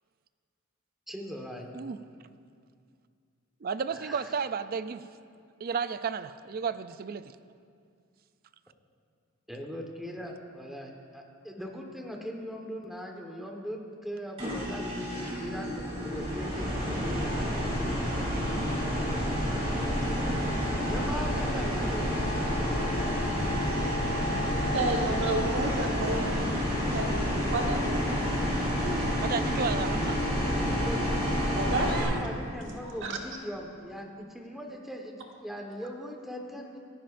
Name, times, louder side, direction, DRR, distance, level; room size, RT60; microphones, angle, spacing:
voice 1, 1.1-1.6 3.9-4.3 9.5-15.1 15.4-17.4 20.5-22.1 30.4-31.2 32.0-36.8, equal, ahead, 0 dB, 1.3 m, -40 dB
voice 2, 3.6-5.0 5.6-7.2 28.8-30.2 31.9-32.1, right 6 dB, 45° right, 13 dB, 0.4 m, -33 dB
sound 1, 14.4-32.0, equal, 30° right, 3.4 m, -29 dB
voice 3, 24.7-26.6 26.8-28.1 28.4-28.5 31.5-32.3 32.8-33.2, right 2 dB, 60° right, 1 dB, 1.4 m, -31 dB
27.5 x 10.0 x 2.6 m, 2.3 s
head